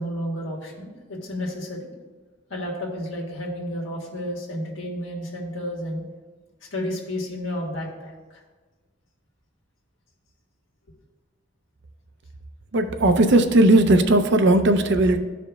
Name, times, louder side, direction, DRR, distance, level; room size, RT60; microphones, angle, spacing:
voice 1, 0.0-1.9 2.5-6.0 6.7-8.1, equal, 70° left, -1 dB, 1.5 m, -31 dB
voice 2, 12.7-15.2, right 1 dB, 60° right, 8 dB, 0.5 m, -17 dB
13.5 x 5.0 x 2.3 m, 1.3 s
head